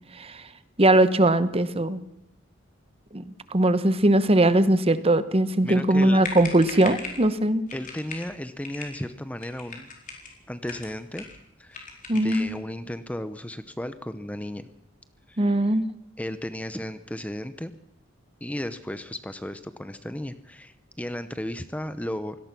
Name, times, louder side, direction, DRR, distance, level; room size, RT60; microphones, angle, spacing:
voice 1, 0.8-2.0 3.1-7.6 12.1-12.5 15.4-15.8, right 1 dB, 30° right, 13 dB, 1.0 m, -20 dB
voice 2, 5.6-6.2 7.7-9.9 10.5-11.3 11.6-11.8 12.1-14.7 15.3-15.8 16.2-17.7 18.4-22.4, left 1 dB, 5° left, 11 dB, 0.7 m, -34 dB
sound 1, 5.9-6.0 6.2-7.3 7.7-8.3 8.6-9.0 9.4-10.3 10.6-11.4 11.7-12.5, left 4 dB, 40° left, 4.4 m, -38 dB
24.0 x 18.0 x 6.0 m, 0.83 s
head